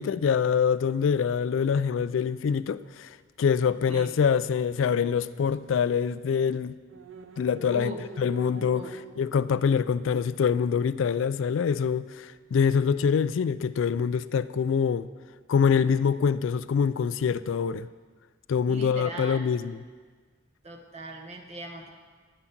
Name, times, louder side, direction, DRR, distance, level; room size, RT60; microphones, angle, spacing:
voice 1, 0.0-6.7 7.4-8.8 9.2-15.1 15.5-17.9 18.5-19.8, left 6 dB, 80° left, 16 dB, 0.3 m, -25 dB
sound 1, 5.2-10.0, right 5 dB, 80° right, 0.8 m, -47 dB
voice 2, 7.7-8.0 8.7-8.9 18.6-19.5 20.6-21.9, right 1 dB, 35° right, 4 dB, 1.1 m, -39 dB
10.0 x 10.0 x 5.8 m, 1.5 s
head